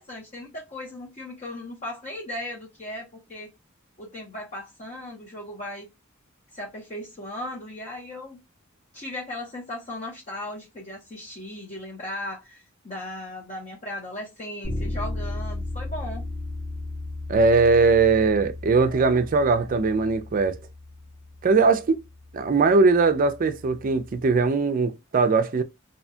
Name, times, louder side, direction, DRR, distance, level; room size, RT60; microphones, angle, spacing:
voice 1, 0.0-3.5 4.0-5.9 6.5-8.4 8.9-16.3, left 1 dB, 35° left, 0.7 m, -37 dB
Bass guitar, 14.6-24.4, left 2 dB, 75° left, 1.4 m, -36 dB
voice 2, 17.3-20.6 21.4-22.0 22.3-25.6, right 4 dB, 40° right, 0.4 m, -20 dB
2.7 x 2.2 x 2.6 m
head